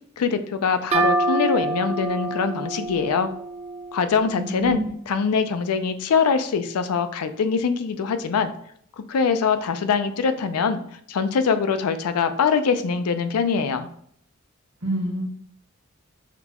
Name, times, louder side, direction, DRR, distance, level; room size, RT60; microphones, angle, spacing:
voice 1, 0.2-3.3 3.9-4.8 5.1-8.5 9.0-10.8 11.1-13.9, left 5 dB, 90° left, 10 dB, 0.4 m, -23 dB
sound 1, 0.9-4.5, right 2 dB, 30° right, 0.5 m, -26 dB
voice 2, 4.2-4.9 14.8-15.2, right 1 dB, 65° right, -1 dB, 1.5 m, -27 dB
5.9 x 2.3 x 2.8 m, 0.65 s
head